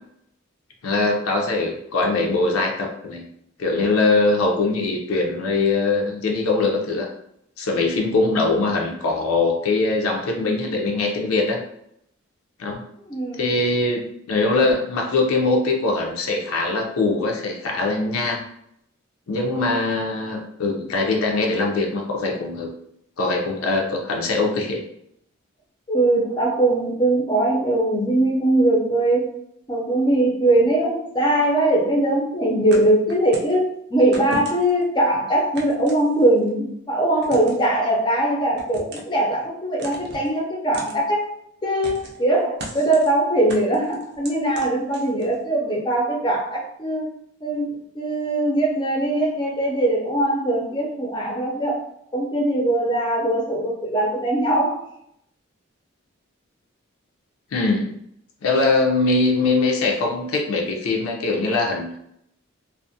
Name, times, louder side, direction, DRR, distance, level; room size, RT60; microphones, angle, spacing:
voice 1, 0.8-3.2 3.6-7.1 7.6-11.6 12.6-12.8 13.4-14.0 14.3-18.4 19.3-22.7 23.2-24.8 57.5-57.9 58.4-62.0, left 3 dB, 85° left, 1 dB, 0.5 m, -22 dB
voice 2, 13.1-13.5 25.9-29.3 29.7-41.4 41.6-47.1 47.4-51.9 52.1-54.8, right 1 dB, 20° left, -2 dB, 0.4 m, -21 dB
sound 1, 32.7-33.6 34.1-34.8 35.5-36.5 37.2-37.7 38.6-39.2 39.8-40.3 40.7-41.0 41.8-42.2 42.6-43.1 43.5-45.4, right 1 dB, 50° right, 0.4 m, -36 dB
2.3 x 2.0 x 2.6 m, 0.75 s
head